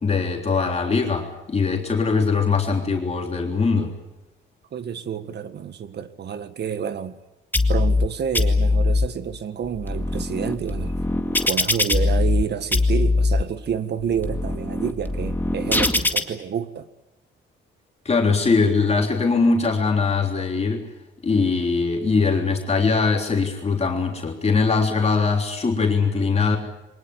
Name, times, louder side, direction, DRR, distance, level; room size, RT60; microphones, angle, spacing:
voice 1, 0.0-4.0 18.0-20.9 21.2-26.6, left 4 dB, 30° left, 1 dB, 3.5 m, -21 dB
voice 2, 4.7-7.1 7.7-11.0 11.4-16.9, right 8 dB, 60° right, 12 dB, 1.7 m, -29 dB
sound 1, 7.5-8.1 8.3-9.1 9.6-12.4 12.7-13.4 14.0-16.2, left 3 dB, 10° left, 2.1 m, -21 dB
23.0 x 19.5 x 9.7 m, 0.96 s
cardioid pair, 90°, 20 cm